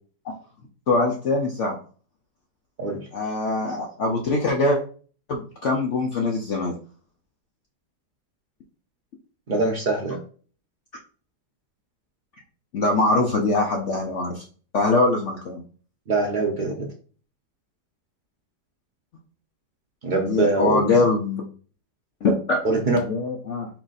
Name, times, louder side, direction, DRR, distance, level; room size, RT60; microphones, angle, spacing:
voice 1, 0.9-1.8 3.1-4.8 5.3-6.7 12.7-14.4 14.7-15.6 20.1-21.4 22.2-22.6 23.0-23.7, left 3 dB, 60° left, 1 dB, 0.8 m, -23 dB
voice 2, 9.5-10.2 16.1-16.9 20.0-21.1 22.6-23.0, right 3 dB, 90° right, 1 dB, 0.4 m, -23 dB
4.6 x 2.5 x 4.0 m, 0.41 s
omnidirectional pair, 1.8 m